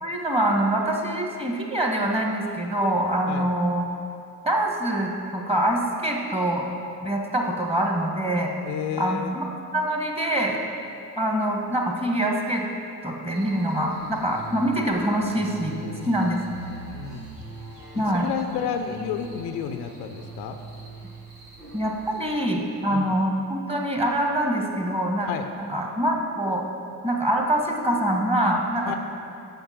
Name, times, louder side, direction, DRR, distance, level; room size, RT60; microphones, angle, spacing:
voice 1, 0.0-3.8 4.4-6.7 7.0-8.5 9.0-9.4 9.7-10.6 11.2-12.6 13.0-15.8 16.0-16.4 17.9-18.3 21.7-25.3 25.7-26.6 27.0-29.0, right 1 dB, 15° right, 0 dB, 1.6 m, -24 dB
voice 2, 8.7-9.4 15.8-16.2 16.9-17.3 17.9-20.6 22.9-23.1 25.3-25.5 28.9-29.0, left 8 dB, 55° left, 7 dB, 0.6 m, -31 dB
sound 1, 13.3-22.5, right 3 dB, 90° right, 1.1 m, -42 dB
8.8 x 5.8 x 6.0 m, 2.5 s
figure-of-eight pair, 45°, 45 cm